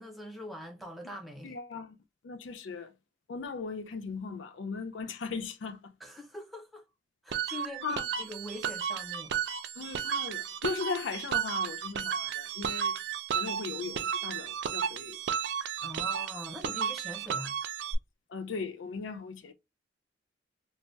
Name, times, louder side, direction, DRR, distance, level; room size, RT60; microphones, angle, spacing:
voice 1, 0.0-1.6 6.0-6.8 7.2-9.3 15.8-17.5, left 1 dB, ahead, 0.6 m, -43 dB
voice 2, 1.4-2.0 2.2-2.9 3.3-5.9 7.5-8.0 9.8-13.0 13.3-15.2 18.3-19.5, left 4 dB, 90° left, 0.4 m, -38 dB
sound 1, 7.3-17.9, right 8 dB, 65° right, 0.4 m, -33 dB
3.2 x 2.2 x 2.6 m
head